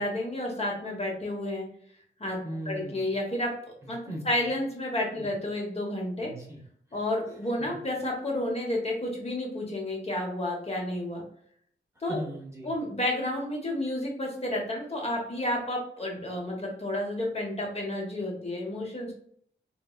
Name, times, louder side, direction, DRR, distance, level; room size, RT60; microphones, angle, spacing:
voice 1, 0.0-1.7 2.2-2.4 2.7-3.5 3.9-4.0 4.2-6.3 6.9-11.2 12.0-12.2 12.6-19.1, left 1 dB, 30° left, -1 dB, 1.1 m, -31 dB
voice 2, 2.4-3.1 3.8-4.4 5.2-5.3 6.2-6.6 6.9-7.0 7.6-7.7 12.1-12.7, equal, 15° right, -3 dB, 0.9 m, -38 dB
4.0 x 3.1 x 2.3 m, 0.63 s
wide cardioid pair, 125°, 20 cm